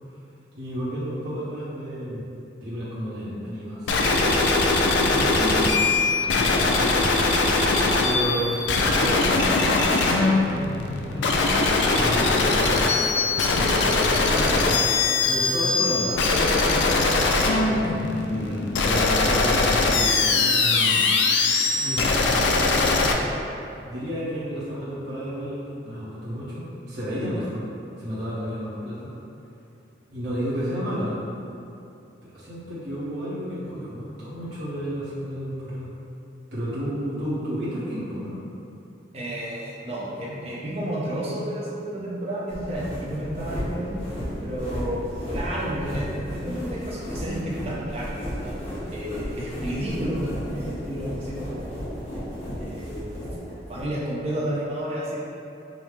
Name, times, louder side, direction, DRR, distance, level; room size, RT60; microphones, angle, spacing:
voice 1, 0.6-2.2 2.6-4.2 4.9-5.9 6.3-7.2 8.0-11.5 11.9-13.0 13.5-14.7 15.3-21.1 21.7-23.2 23.8-27.6 28.0-29.1 30.1-31.2 32.2-35.9 36.5-38.4, equal, 70° right, -11 dB, 0.9 m, -31 dB
sound 1, 3.9-23.1, left 3 dB, 75° left, 0.3 m, -21 dB
voice 2, 39.1-44.0 44.4-45.0 45.3-48.1 48.4-48.6 48.9-51.9 52.1-52.2 52.6-53.2 53.7-55.2, equal, 35° right, -6 dB, 0.6 m, -31 dB
sound 2, 42.5-53.8, equal, 35° left, 1.0 m, -34 dB
5.1 x 2.0 x 3.2 m, 2.7 s
head